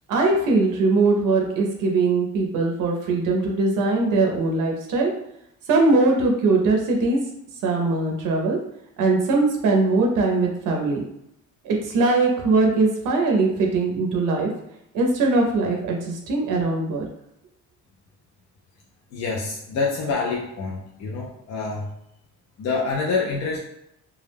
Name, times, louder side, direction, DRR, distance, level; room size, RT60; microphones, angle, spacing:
voice 1, 0.1-5.1 5.7-7.2 7.6-8.6 9.0-11.0 11.6-14.5 14.9-17.1, right 3 dB, 80° right, 1 dB, 0.5 m, -21 dB
voice 2, 19.1-21.9 22.6-23.6, left 4 dB, 60° left, -3 dB, 0.4 m, -26 dB
2.2 x 2.0 x 3.2 m, 0.80 s
cardioid pair, 180°, 31 cm